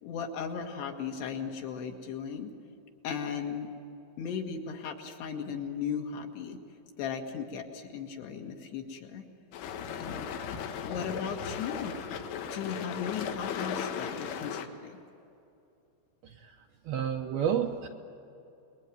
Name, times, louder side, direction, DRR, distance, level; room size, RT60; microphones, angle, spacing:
voice 1, 0.0-2.5 3.0-3.7 4.2-6.6 7.0-9.2 10.0-10.3 10.8-12.0 12.5-15.0, left 7 dB, 65° left, 2 dB, 3.6 m, -36 dB
sound 1, 9.5-14.7, left 7 dB, 85° left, 4.1 m, -36 dB
voice 2, 16.2-17.9, right 8 dB, 70° right, 2 dB, 2.4 m, -31 dB
28.5 x 22.0 x 9.2 m, 2.7 s
omnidirectional pair, 5.6 m